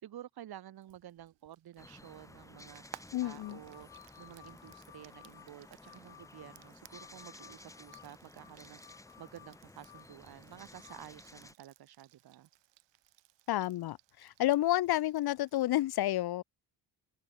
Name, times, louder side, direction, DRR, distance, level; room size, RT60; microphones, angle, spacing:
voice 1, 0.0-2.8 3.2-3.9 4.2-8.8 9.2-12.5, right 12 dB, 60° right, 5.3 m, -51 dB
Frying (food), 0.8-15.7, right 15 dB, 80° right, 4.1 m, -60 dB
sound 1, 1.8-11.5, left 2 dB, 5° left, 2.5 m, -55 dB
voice 2, 3.1-3.6 13.5-16.4, left 14 dB, 60° left, 1.1 m, -30 dB
sound 2, 3.2-11.1, left 16 dB, 90° left, 6.3 m, -58 dB
open air
cardioid pair, 155°, 43 cm